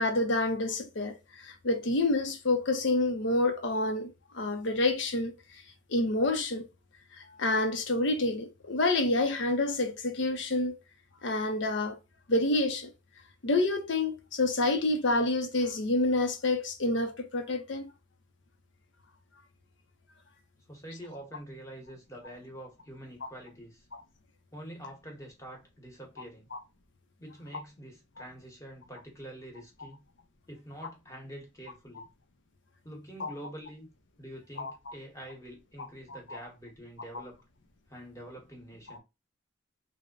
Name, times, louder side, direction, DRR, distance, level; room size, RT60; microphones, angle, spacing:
voice 1, 0.0-5.4 5.9-6.7 7.2-10.8 11.2-12.0 12.3-12.9 13.4-17.9 26.5-26.6 32.0-32.1 33.2-33.3 34.6-34.7 36.1-36.4 38.9-39.0, left 2 dB, 60° left, 0.7 m, -28 dB
voice 2, 20.7-23.9 24.5-26.5 27.2-30.0 30.5-32.1 32.8-33.9 34.2-37.4 37.9-39.0, right 1 dB, 15° left, 1.1 m, -46 dB
3.3 x 2.2 x 3.8 m
head